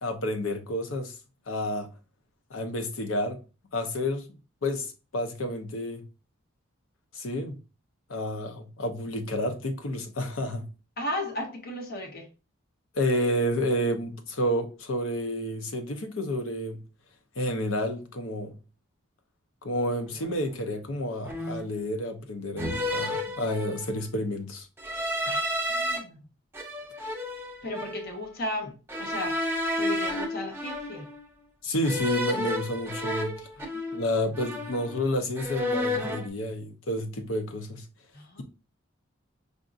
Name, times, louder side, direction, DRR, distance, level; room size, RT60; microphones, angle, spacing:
voice 1, 0.0-1.1 1.5-1.9 2.5-3.4 3.7-4.2 4.6-6.0 7.1-7.5 8.1-10.7 12.9-16.8 17.4-18.6 19.6-24.7 31.6-33.4 33.9-37.8, left 1 dB, 70° left, 0.7 m, -30 dB
voice 2, 11.0-12.3 25.2-25.4 25.7-26.2 27.6-29.4 29.8-31.1 33.6-34.0 38.1-38.4, left 1 dB, 45° left, 0.9 m, -35 dB
sound 1, 20.2-20.4 21.2-21.8 22.6-24.0 24.8-26.0 26.5-28.1 28.9-31.2 31.8-34.1 34.3-35.1 35.4-36.3, left 1 dB, 10° right, 0.5 m, -31 dB
5.0 x 2.7 x 2.5 m
head